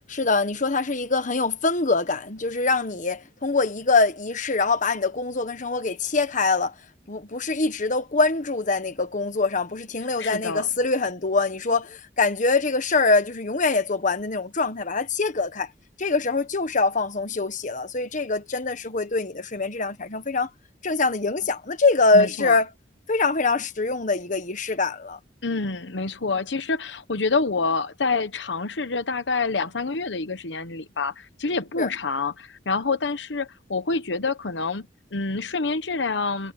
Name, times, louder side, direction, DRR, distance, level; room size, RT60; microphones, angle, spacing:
voice 1, 0.1-6.7 7.1-15.7 16.0-20.5 20.8-22.7 23.1-25.2 31.8-31.9, left 3 dB, 45° left, 1.4 m, -24 dB
voice 2, 10.2-10.7 22.1-22.6 25.4-36.5, left 4 dB, 85° left, 1.1 m, -27 dB
head